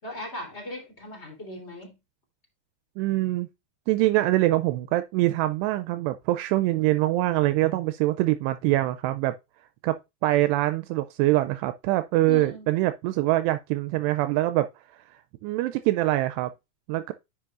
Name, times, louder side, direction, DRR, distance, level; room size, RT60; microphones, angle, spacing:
voice 1, 0.0-1.9 4.0-4.1 12.3-12.7, left 2 dB, 15° left, 2.9 m, -38 dB
voice 2, 3.0-3.5 3.9-9.4 9.8-14.7 15.4-16.5 16.9-17.1, right 17 dB, 85° right, 2.6 m, -24 dB
10.0 x 6.7 x 2.4 m
omnidirectional pair, 4.8 m